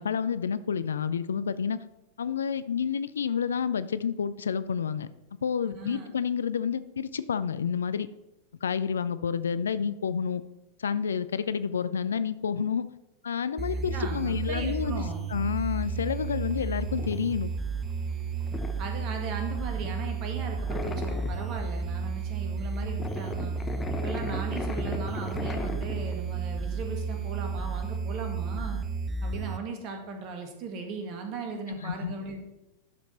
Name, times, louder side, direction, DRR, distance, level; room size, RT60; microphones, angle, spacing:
voice 1, 0.0-1.8 2.2-5.1 5.4-8.1 8.6-10.4 10.8-12.9 13.2-15.0 15.3-17.5 31.8-32.1, left 7 dB, 70° left, 15 dB, 0.4 m, -29 dB
voice 2, 5.6-6.1 13.7-15.2 18.8-23.5 23.9-28.8 29.2-32.4, right 4 dB, 40° right, 4 dB, 1.8 m, -38 dB
sound 1, 13.6-29.6, right 5 dB, 25° right, 0.6 m, -32 dB
sound 2, 15.8-28.0, left 4 dB, 15° left, 0.9 m, -38 dB
12.0 x 5.2 x 4.2 m, 0.94 s
figure-of-eight pair, 90°, 0 cm